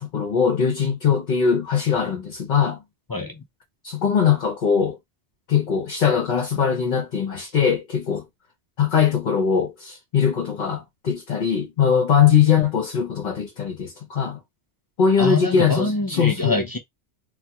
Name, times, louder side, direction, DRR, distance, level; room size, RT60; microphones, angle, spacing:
voice 1, 0.0-2.8 3.8-5.0 5.5-8.2 8.8-14.4 15.0-16.6, left 7 dB, 50° left, 0.8 m, -21 dB
voice 2, 3.1-3.4 15.2-16.8, left 3 dB, 35° left, 0.3 m, -24 dB
3.4 x 2.2 x 2.8 m
omnidirectional pair, 1.2 m